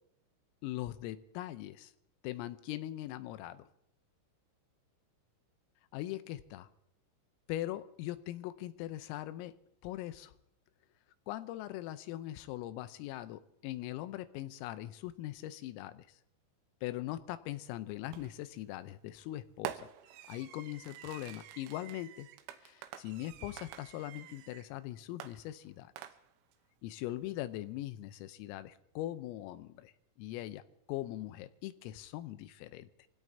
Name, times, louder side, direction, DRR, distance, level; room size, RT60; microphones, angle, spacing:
voice 1, 0.6-1.9 2.2-3.7 5.9-6.7 7.5-9.5 9.8-10.3 11.3-16.1 16.8-19.9 20.3-22.3 22.6-25.9 26.8-29.9 30.2-30.6 30.9-33.1, left 14 dB, 90° left, 12 dB, 3.5 m, -41 dB
Fireworks, 18.1-18.5 19.7-24.7 25.2-26.5, right 10 dB, 80° right, 3.1 m, -49 dB
27.0 x 17.0 x 2.8 m, 0.77 s
omnidirectional pair, 5.9 m